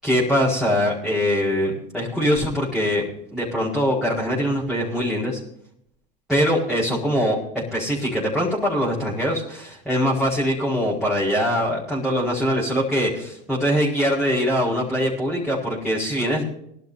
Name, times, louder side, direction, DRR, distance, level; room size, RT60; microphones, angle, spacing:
voice 1, 0.0-3.0 3.3-5.4 6.3-16.4, equal, ahead, -7 dB, 4.7 m, -22 dB
23.0 x 12.0 x 2.7 m, 0.72 s
hypercardioid pair, 105°, 29 cm